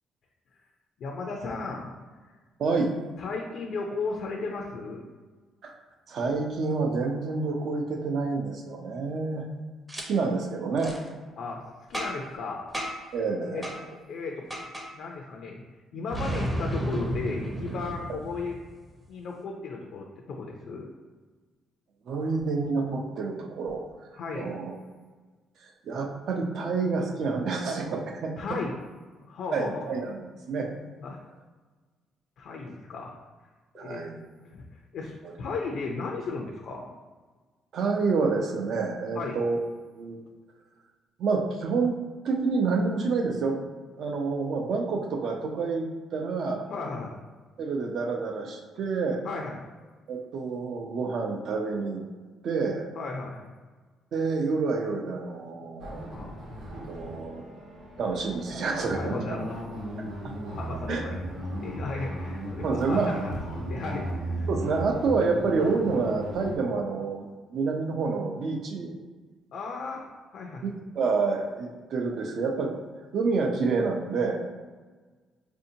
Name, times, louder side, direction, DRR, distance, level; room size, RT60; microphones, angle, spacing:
voice 1, 1.0-1.9 2.2-2.3 3.2-5.0 11.4-11.6 11.9-12.6 13.1-13.2 13.5-13.6 14.1-14.4 14.9-15.6 15.9-18.6 19.1-20.9 24.2-24.5 28.4-28.7 29.2-29.9 31.0-31.2 32.4-33.1 33.7-34.0 34.5-34.7 34.9-36.9 39.1-39.4 46.7-47.1 49.2-49.6 53.0-53.5 56.1-56.4 58.9-59.6 60.2-61.2 61.6-63.3 63.6-64.5 69.5-70.1 70.3-70.6, left 4 dB, 65° left, 0 dB, 0.4 m, -35 dB
voice 2, 2.6-2.9 5.6-5.7 6.1-9.5 10.1-10.9 13.1-13.7 22.1-23.9 24.3-24.7 25.6-28.4 29.5-30.8 33.7-34.2 35.2-35.3 37.7-39.6 40.0-40.2 41.2-42.0 42.2-43.6 44.0-45.9 46.1-46.7 47.6-49.2 50.1-52.0 52.4-52.9 54.1-56.1 56.9-57.5 58.0-59.1 60.9-61.0 61.9-62.0 62.6-63.1 64.5-69.0 70.6-72.7 73.1-74.5, right 4 dB, 60° right, 2 dB, 0.6 m, -28 dB
Boom, 9.9-10.0 10.8-11.0 11.9-12.3 12.7-13.1 13.6-13.8 14.5-14.9 16.1-18.8, equal, 10° right, 0.6 m, -32 dB
sound 1, 55.8-66.6, equal, 85° right, 0.9 m, -36 dB
4.3 x 2.7 x 2.7 m, 1.4 s
cardioid pair, 125°, 0 cm